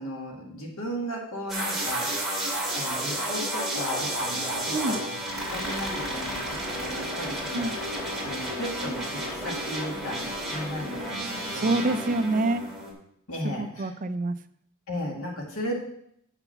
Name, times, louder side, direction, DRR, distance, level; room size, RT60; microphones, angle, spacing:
voice 1, 0.0-2.1 2.7-11.9 13.3-13.9 14.9-15.8, equal, 65° left, 0 dB, 2.1 m, -36 dB
sound 1, 1.5-12.9, right 1 dB, ahead, 2.4 m, -31 dB
voice 2, 11.5-12.6 13.4-14.3, right 2 dB, 35° right, 11 dB, 0.5 m, -26 dB
8.0 x 5.9 x 5.8 m, 0.70 s
head